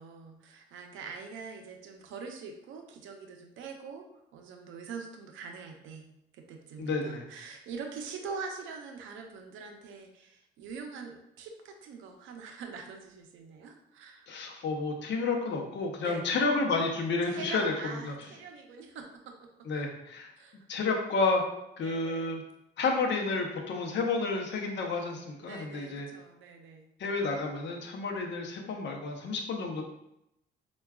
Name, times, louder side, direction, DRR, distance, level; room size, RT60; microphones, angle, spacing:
voice 1, 0.0-4.0 4.3-6.1 6.3-14.3 16.0-16.5 17.2-19.5 20.4-20.6 21.8-22.3 25.4-26.9, right 5 dB, 85° right, 3 dB, 0.5 m, -44 dB
voice 2, 6.8-7.2 14.3-18.2 19.7-20.3 20.7-21.4 21.8-22.4 22.8-26.1 27.0-29.8, left 3 dB, 65° left, 2 dB, 0.7 m, -30 dB
4.5 x 2.3 x 2.3 m, 0.83 s
cardioid pair, 90°, 20 cm